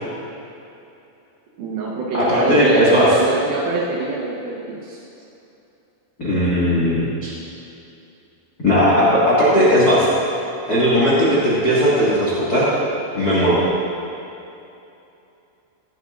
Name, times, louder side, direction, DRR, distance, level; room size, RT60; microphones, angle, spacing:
voice 1, 1.6-4.8, right 3 dB, 70° right, -3 dB, 2.5 m, -24 dB
voice 2, 2.3-3.1 6.2-7.3 8.6-10.1 10.7-12.7 13.1-13.6, equal, 60° left, -8 dB, 0.9 m, -17 dB
16.0 x 11.0 x 2.5 m, 2.8 s
omnidirectional pair, 5.2 m